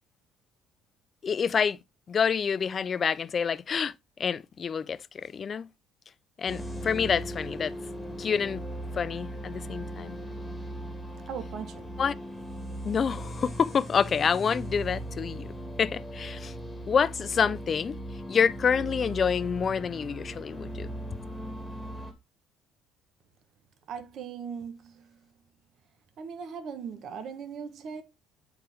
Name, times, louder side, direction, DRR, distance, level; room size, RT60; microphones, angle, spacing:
voice 1, 1.2-1.8 2.1-3.9 4.2-5.7 6.4-7.7 8.2-8.6 8.9-10.2 12.0-12.1 12.8-15.5 15.8-16.5 16.9-18.0 18.3-20.9, left 6 dB, 30° left, 0.4 m, -27 dB
sound 1, 6.5-22.1, right 1 dB, ahead, 1.8 m, -38 dB
voice 2, 11.3-11.9 23.9-25.2 26.2-28.0, right 6 dB, 50° right, 1.2 m, -39 dB
8.6 x 4.5 x 3.5 m
cardioid pair, 145°, 0 cm